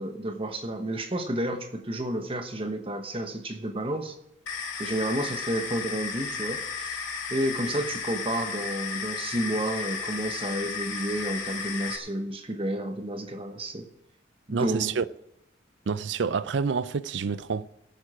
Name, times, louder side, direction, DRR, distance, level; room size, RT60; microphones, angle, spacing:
voice 1, 0.0-4.2 4.8-7.0 7.3-13.9 14.5-14.9, right 1 dB, 30° right, 1.1 m, -31 dB
sound 1, 4.5-12.0, left 5 dB, 90° left, 2.0 m, -34 dB
voice 2, 14.5-15.0 15.9-17.7, right 5 dB, 65° right, 0.5 m, -28 dB
18.0 x 9.0 x 5.0 m
head